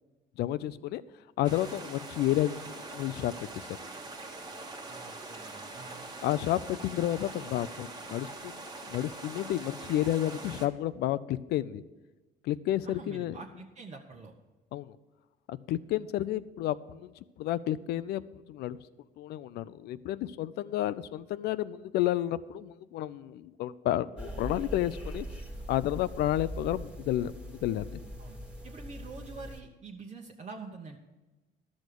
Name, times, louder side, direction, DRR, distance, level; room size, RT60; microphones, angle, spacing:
voice 1, 0.4-1.0 1.4-2.6 2.9-3.7 6.2-11.8 12.4-13.4 14.7-15.0 15.5-17.1 17.4-18.2 18.5-18.8 19.2-25.3 25.7-28.0, left 13 dB, 75° left, 16 dB, 0.5 m, -31 dB
sound 1, 1.4-10.7, right 2 dB, 25° right, 1.3 m, -43 dB
voice 2, 4.9-6.0 12.8-14.3 28.2-28.4 28.6-31.0, right 4 dB, 40° right, 0 dB, 1.0 m, -46 dB
sound 2, 24.2-29.6, equal, 5° right, 1.8 m, -41 dB
12.5 x 6.3 x 6.6 m, 1.1 s
cardioid pair, 110°, 17 cm